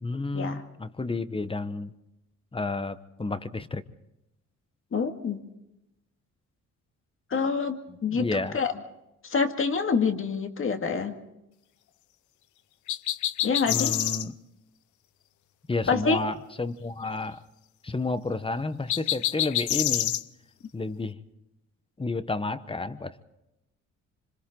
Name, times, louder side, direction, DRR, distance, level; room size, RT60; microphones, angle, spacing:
voice 1, 0.0-1.9 2.5-3.8 7.9-8.6 13.7-14.3 15.7-17.4 17.8-20.2 20.7-21.2 22.0-23.3, left 3 dB, 20° left, 13 dB, 1.0 m, -31 dB
voice 2, 4.9-5.4 7.3-8.7 9.2-11.2 13.4-13.9 15.9-16.2, left 5 dB, 45° left, 6 dB, 2.1 m, -27 dB
sound 1, 12.9-14.3 18.9-20.2, left 13 dB, 75° left, 0.8 m, -27 dB
26.5 x 25.5 x 3.9 m, 0.89 s
cardioid pair, 90°, 30 cm